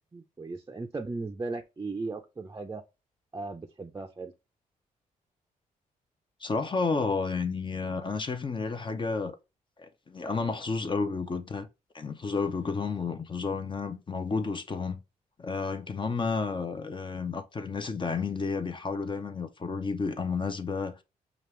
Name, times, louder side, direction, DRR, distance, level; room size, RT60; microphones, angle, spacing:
voice 1, 0.1-2.8 3.3-4.3, right 3 dB, 20° right, 0.5 m, -37 dB
voice 2, 6.4-9.4 9.8-11.7 11.9-15.0 15.4-21.0, left 4 dB, 35° left, 0.7 m, -31 dB
5.2 x 2.4 x 3.1 m
cardioid pair, 80°, 14 cm